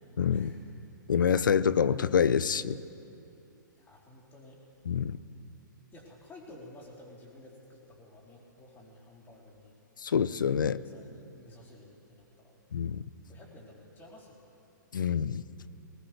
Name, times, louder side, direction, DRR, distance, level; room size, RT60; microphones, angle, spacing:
voice 1, 0.2-0.5 1.1-2.8 4.8-5.2 10.0-10.8 12.7-13.0 14.9-15.4, left 7 dB, 80° left, 16 dB, 0.5 m, -26 dB
voice 2, 3.8-4.6 5.9-9.7 10.9-12.5 13.3-14.5, left 1 dB, 20° left, -3 dB, 3.8 m, -52 dB
19.5 x 19.0 x 3.4 m, 2.7 s
hypercardioid pair, 125°, 11 cm